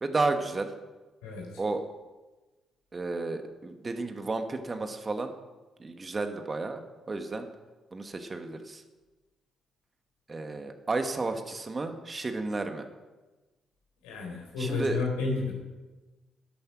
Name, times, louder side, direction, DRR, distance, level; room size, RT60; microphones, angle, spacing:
voice 1, 0.0-0.7 1.6-1.8 2.9-5.3 5.8-6.8 7.1-7.5 7.9-8.8 10.3-12.8 14.6-15.0, right 3 dB, 35° right, 6 dB, 1.6 m, -32 dB
voice 2, 14.0-15.5, left 4 dB, 80° left, -1 dB, 4.1 m, -31 dB
11.5 x 11.0 x 6.0 m, 1.2 s
hypercardioid pair, 45°, 0 cm